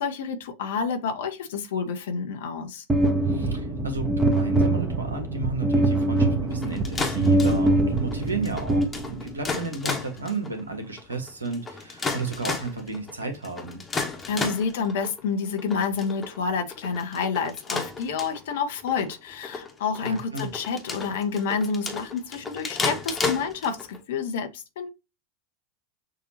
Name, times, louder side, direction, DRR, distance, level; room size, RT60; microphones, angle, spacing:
voice 1, 0.0-2.8 14.3-24.9, left 5 dB, 65° left, 1.1 m, -29 dB
sound 1, 2.9-9.5, right 2 dB, 15° right, 1.1 m, -23 dB
voice 2, 3.3-13.8 20.0-20.5, right 3 dB, 85° right, 1.4 m, -33 dB
sound 2, 6.5-24.0, left 4 dB, 20° left, 1.3 m, -33 dB
6.7 x 2.8 x 2.8 m
figure-of-eight pair, 85°, 0 cm